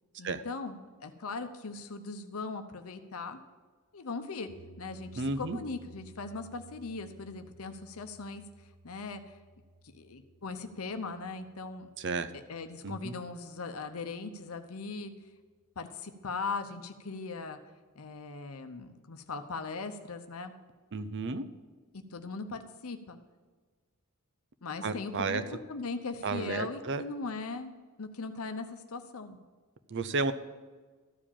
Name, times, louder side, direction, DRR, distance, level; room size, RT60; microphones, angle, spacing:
voice 1, 0.2-3.4 3.9-4.5 4.8-8.4 8.8-9.4 9.8-11.9 12.3-15.1 15.8-17.6 18.0-20.5 22.1-23.2 24.6-25.4 25.7-29.4, left 4 dB, 75° left, 7 dB, 0.8 m, -39 dB
sound 1, 4.5-14.7, right 1 dB, 10° left, 1.8 m, -57 dB
voice 2, 5.2-5.6 12.0-12.3 12.8-13.1 20.9-21.5 24.8-25.4 26.2-27.0 29.9-30.3, right 3 dB, 55° right, 11 dB, 0.6 m, -32 dB
13.5 x 5.0 x 8.7 m, 1.4 s
head